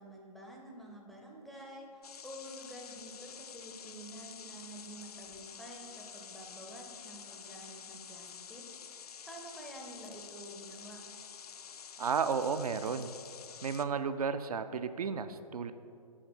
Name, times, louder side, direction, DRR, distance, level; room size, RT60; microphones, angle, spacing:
voice 1, 0.0-11.0, right 1 dB, ahead, -1 dB, 0.4 m, -49 dB
sound 1, 2.0-13.8, left 7 dB, 75° left, 0.4 m, -49 dB
voice 2, 12.0-13.1 13.6-15.7, right 6 dB, 70° right, 10 dB, 0.4 m, -33 dB
6.3 x 3.8 x 6.0 m, 2.4 s
figure-of-eight pair, 125°, 20 cm